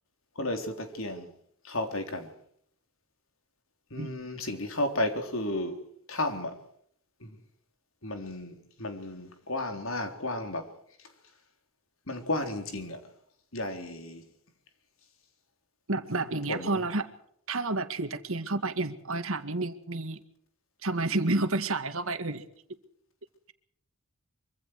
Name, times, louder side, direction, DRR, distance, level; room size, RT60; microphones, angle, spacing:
voice 1, 0.4-1.3 1.6-2.3 3.9-5.8 6.1-6.6 7.2-7.4 8.0-10.7 12.1-13.0 13.5-14.2 16.5-16.8, left 1 dB, 65° left, 3.8 m, -33 dB
voice 2, 15.9-17.1 17.5-20.2 20.8-22.5, right 2 dB, 70° right, 2.1 m, -30 dB
25.0 x 25.0 x 4.8 m
head